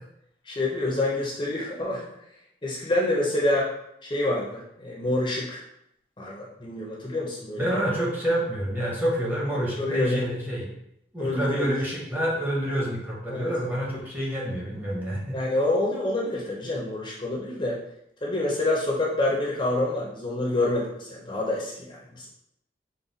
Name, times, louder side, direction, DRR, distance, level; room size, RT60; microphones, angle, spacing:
voice 1, 0.5-2.1 2.6-3.7 4.0-5.6 6.2-7.7 9.8-10.2 11.2-11.7 13.3-13.5 15.3-17.8 18.2-22.3, left 2 dB, 25° left, -3 dB, 0.6 m, -27 dB
voice 2, 7.6-10.7 11.1-15.4, equal, 10° right, -4 dB, 0.8 m, -27 dB
3.9 x 2.2 x 3.9 m, 0.77 s
head